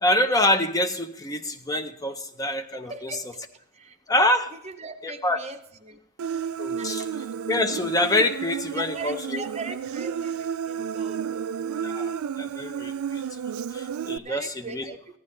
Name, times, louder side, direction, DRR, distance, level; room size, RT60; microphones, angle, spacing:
voice 1, 0.0-3.2 4.1-4.5 5.0-5.4 6.6-7.0 7.5-9.4 11.8-13.2 13.7-14.9, left 1 dB, 15° left, 7 dB, 0.6 m, -26 dB
voice 2, 2.9-3.4 3.7-4.0 4.5-6.0 6.6-7.1 8.7-11.5 14.2-15.0, right 4 dB, 30° right, 8 dB, 0.7 m, -40 dB
Human voice, 6.2-14.2, right 7 dB, 80° right, 0.3 m, -31 dB
15.0 x 11.0 x 3.2 m, 0.75 s
head